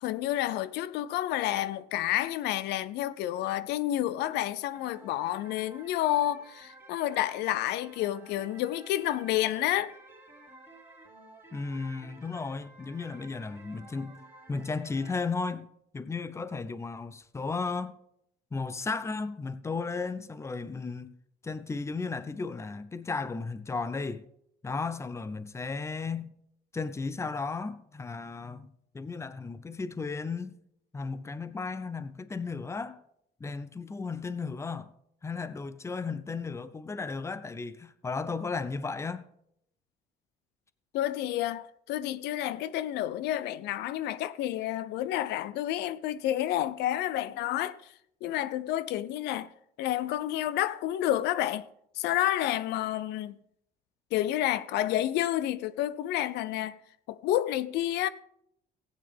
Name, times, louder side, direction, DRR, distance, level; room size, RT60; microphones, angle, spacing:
voice 1, 0.0-9.9 40.9-47.9 48.2-49.5 49.8-51.7 51.9-53.4 54.1-56.8 57.1-58.1, left 13 dB, 85° left, 0.5 m, -30 dB
sound 1, 4.7-15.2, right 2 dB, 15° right, 3.0 m, -53 dB
voice 2, 11.5-14.2 14.5-15.7 15.9-18.0 18.5-21.1 21.4-24.2 24.6-26.3 26.7-30.6 30.9-33.0 33.4-34.9 35.2-39.3, left 4 dB, 15° left, 0.6 m, -35 dB
15.5 x 8.9 x 3.5 m
cardioid pair, 110°, 17 cm